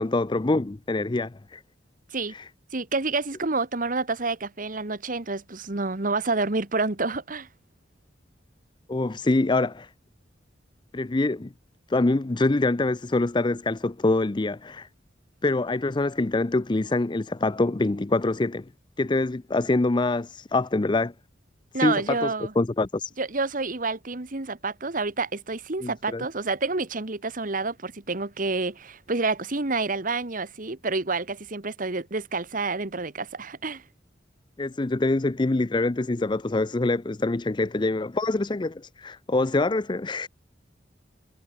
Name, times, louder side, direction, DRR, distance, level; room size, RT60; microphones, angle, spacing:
voice 1, 0.0-1.6 2.3-2.5 8.9-9.9 10.9-11.5 11.9-14.9 15.4-18.7 19.0-21.1 21.7-23.1 25.8-26.2 34.6-40.3, left 2 dB, 25° left, 0.5 m, -25 dB
voice 2, 2.7-7.5 21.7-22.5 23.2-33.8, right 3 dB, 45° right, 1.5 m, -28 dB
head